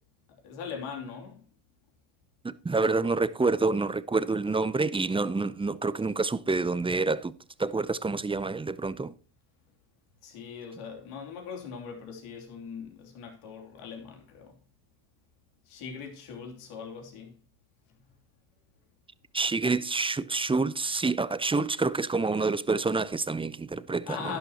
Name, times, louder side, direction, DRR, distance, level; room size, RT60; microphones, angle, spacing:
voice 1, 0.4-1.4 10.2-14.6 15.7-17.3 24.1-24.4, left 6 dB, 80° left, 3.1 m, -40 dB
voice 2, 2.4-7.3 7.6-9.1 19.3-24.4, right 3 dB, 10° right, 0.5 m, -27 dB
11.5 x 11.0 x 2.9 m
supercardioid pair, 85°, 50 cm